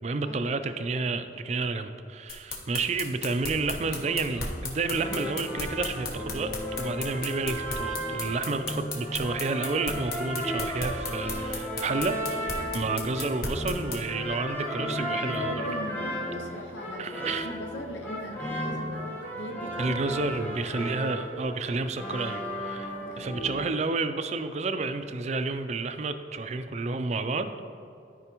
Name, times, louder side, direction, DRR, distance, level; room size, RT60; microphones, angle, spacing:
voice 1, 0.0-6.5 6.8-15.7 17.0-17.5 19.8-27.5, right 3 dB, 40° right, 9 dB, 0.4 m, -30 dB
sound 1, 2.3-14.0, left 3 dB, 55° left, 1.3 m, -35 dB
sound 2, 3.8-23.7, equal, 10° left, 1.2 m, -35 dB
voice 2, 15.0-20.2 23.0-23.3, equal, 90° left, 3 dB, 0.7 m, -40 dB
13.0 x 5.0 x 3.0 m, 2.6 s
head